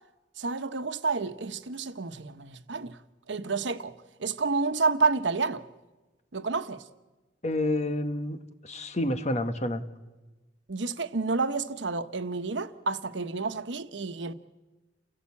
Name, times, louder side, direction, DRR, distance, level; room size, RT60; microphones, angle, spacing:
voice 1, 0.4-3.0 3.3-3.9 4.2-5.6 6.3-6.8 10.7-14.3, right 4 dB, 85° right, 1.1 m, -29 dB
voice 2, 7.4-8.4 8.6-9.8, left 1 dB, 40° left, 1.3 m, -29 dB
29.5 x 16.5 x 8.5 m
head